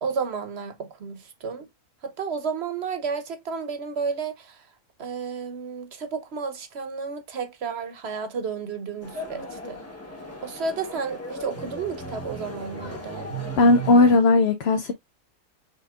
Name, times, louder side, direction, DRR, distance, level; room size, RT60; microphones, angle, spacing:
voice 1, 0.0-1.7 2.0-4.6 5.0-9.8 10.4-13.3, right 5 dB, 55° right, 1.1 m, -32 dB
sound 1, 9.0-14.2, right 1 dB, 10° left, 1.1 m, -36 dB
voice 2, 13.6-14.9, left 2 dB, 60° left, 0.8 m, -17 dB
5.8 x 3.8 x 2.4 m
omnidirectional pair, 1.4 m